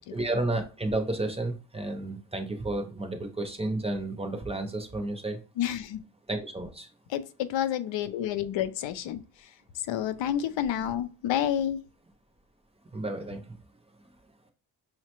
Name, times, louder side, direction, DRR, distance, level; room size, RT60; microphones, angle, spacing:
voice 1, 0.1-5.4 6.3-6.9 12.9-13.6, right 2 dB, 15° right, 5 dB, 0.5 m, -32 dB
voice 2, 5.6-6.0 7.1-9.2 9.9-11.8, left 10 dB, 90° left, 11 dB, 0.5 m, -29 dB
5.6 x 2.1 x 2.9 m, 0.34 s
cardioid pair, 125°, 44 cm